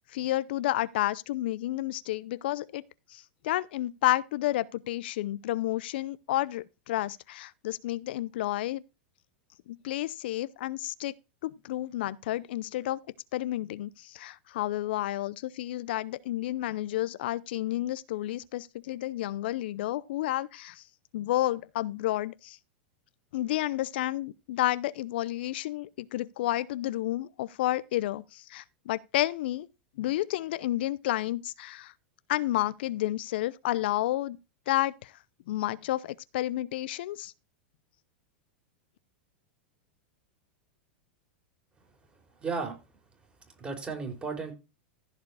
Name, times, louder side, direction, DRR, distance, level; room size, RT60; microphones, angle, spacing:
voice 1, 0.1-2.8 3.1-8.8 9.7-11.1 11.4-13.0 13.3-20.8 21.1-22.6 23.3-29.7 30.0-31.9 32.3-34.4 34.7-35.1 35.5-37.3, left 15 dB, 70° left, 0.6 m, -31 dB
voice 2, 42.4-42.8 43.6-44.5, right 4 dB, 20° right, 4.7 m, -34 dB
15.0 x 5.0 x 4.8 m
hypercardioid pair, 110°, 6 cm